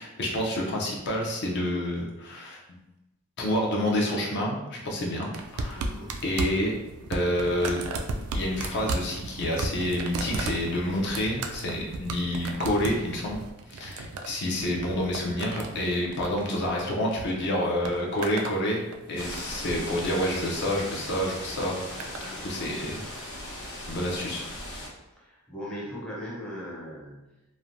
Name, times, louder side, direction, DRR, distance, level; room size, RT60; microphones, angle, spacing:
voice 1, 0.0-2.8 3.4-5.9 6.2-6.7 7.1-7.8 8.3-13.4 13.7-23.0 23.9-24.4, left 1 dB, 50° left, -2 dB, 0.5 m, -28 dB
sound 1, 5.3-17.3 17.6-18.6 18.9-19.6 20.6-20.9 21.6-22.3 23.2-23.3, right 3 dB, 75° right, 0.3 m, -35 dB
voice 2, 5.7-6.2 22.2-22.7 25.2-27.3, equal, 5° left, -6 dB, 0.5 m, -39 dB
sound 2, 19.2-24.9, left 1 dB, 80° left, 0.9 m, -38 dB
3.1 x 2.1 x 2.5 m, 0.96 s
head